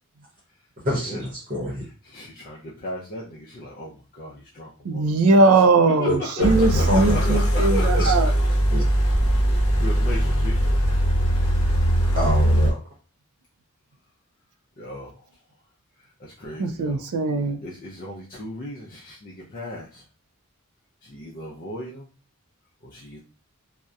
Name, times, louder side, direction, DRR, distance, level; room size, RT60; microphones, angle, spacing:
voice 1, 0.8-1.8 6.0-7.4 7.9-8.1 8.7-8.8 9.2-9.3 12.1-12.8, left 1 dB, 40° right, -4 dB, 0.8 m, -26 dB
voice 2, 2.1-5.4 6.0-8.3 9.8-10.6 14.8-15.1 16.2-17.0 17.6-20.0 21.0-22.1 22.8-23.2, left 1 dB, 40° left, -4 dB, 0.4 m, -35 dB
voice 3, 4.9-8.3 16.6-17.6, right 3 dB, 75° right, 7 dB, 0.4 m, -20 dB
sound 1, 6.4-12.7, equal, 70° left, 0.7 m, -20 dB
2.6 x 2.0 x 2.3 m, 0.34 s
head